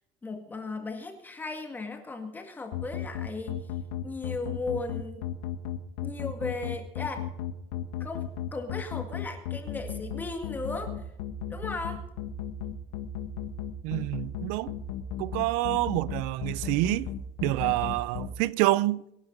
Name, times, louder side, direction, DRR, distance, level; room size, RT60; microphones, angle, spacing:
voice 1, 0.2-3.7 4.0-5.2 6.0-7.3 8.0-11.0 11.5-12.0, left 3 dB, 15° left, 2.1 m, -36 dB
sound 1, 2.7-18.3, left 11 dB, 85° left, 1.8 m, -34 dB
voice 2, 13.8-14.7 15.2-17.1 17.4-19.0, right 18 dB, 75° right, 0.7 m, -27 dB
24.0 x 11.0 x 4.0 m
cardioid pair, 170°, 14 cm